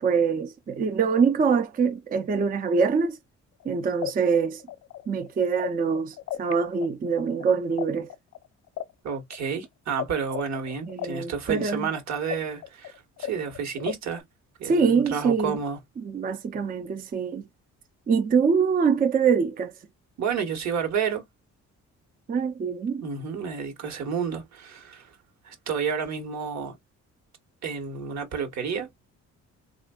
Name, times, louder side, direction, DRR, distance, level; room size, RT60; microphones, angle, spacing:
voice 1, 0.0-3.2 3.7-4.6 5.1-8.1 10.9-11.9 14.6-15.6 16.0-17.4 18.1-19.7 22.3-23.0, right 5 dB, 30° right, 0.4 m, -24 dB
sound 1, 3.6-3.7 4.0-6.5 6.8-10.0 10.3-14.2, left 13 dB, 60° left, 0.6 m, -35 dB
voice 2, 9.0-14.2 14.6-15.8 20.2-21.2 23.0-25.1 25.4-26.8 27.6-28.9, right 6 dB, 65° right, 1.2 m, -30 dB
3.4 x 2.4 x 2.2 m
cardioid pair, 90°, 30 cm